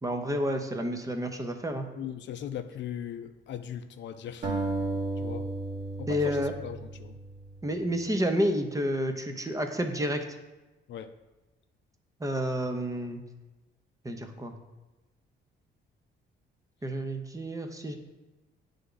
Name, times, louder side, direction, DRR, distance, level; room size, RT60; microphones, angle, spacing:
voice 1, 0.0-1.9 6.1-6.5 7.6-10.2 12.2-13.2 14.0-14.6 16.8-18.0, equal, 15° right, 0.7 m, -30 dB
voice 2, 2.0-4.5 5.2-5.5 6.0-7.2 10.9-11.2, left 9 dB, 65° left, 0.5 m, -39 dB
sound 1, 4.4-7.6, right 2 dB, 50° right, 1.5 m, -34 dB
9.5 x 3.5 x 3.9 m
cardioid pair, 90°, 20 cm